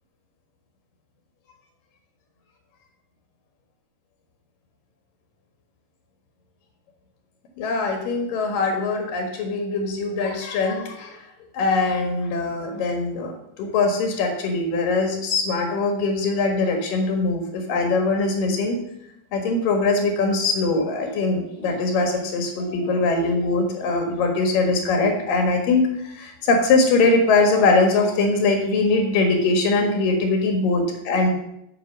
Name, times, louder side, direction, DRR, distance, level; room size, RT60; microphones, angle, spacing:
voice 1, 7.6-11.2 11.5-13.3 13.6-18.8 19.3-31.3, left 3 dB, 85° left, 4 dB, 3.2 m, -22 dB
8.7 x 6.5 x 6.2 m, 0.79 s
omnidirectional pair, 3.8 m